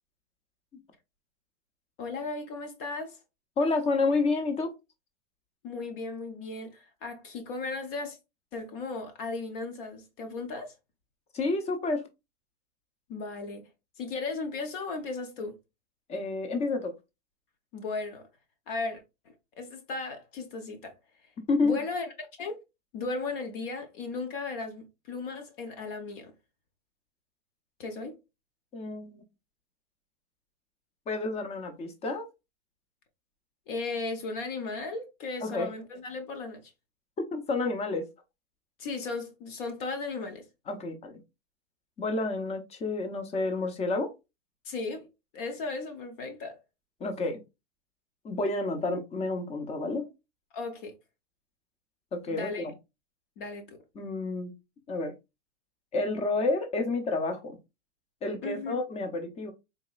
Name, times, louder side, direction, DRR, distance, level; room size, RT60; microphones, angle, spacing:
voice 1, 2.0-3.2 5.6-8.2 8.5-10.7 13.1-13.7 14.0-15.6 17.7-18.3 18.7-19.0 19.6-20.9 21.6-22.1 22.4-22.6 22.9-26.3 27.8-28.2 33.7-36.6 38.8-40.4 44.6-45.1 45.3-46.6 50.5-50.9 52.3-52.7 53.4-53.8 58.4-58.7, left 3 dB, 45° left, 0.9 m, -36 dB
voice 2, 3.6-4.7 11.3-12.1 16.1-16.9 21.5-21.8 28.7-29.2 31.1-32.3 35.4-35.7 37.2-38.1 40.7-41.2 42.0-44.1 47.0-47.4 48.2-50.1 52.1-52.7 53.9-54.5 54.9-55.1 55.9-57.6 58.2-59.5, left 3 dB, 15° left, 0.7 m, -29 dB
4.1 x 2.7 x 2.3 m
hypercardioid pair, 130°, 36 cm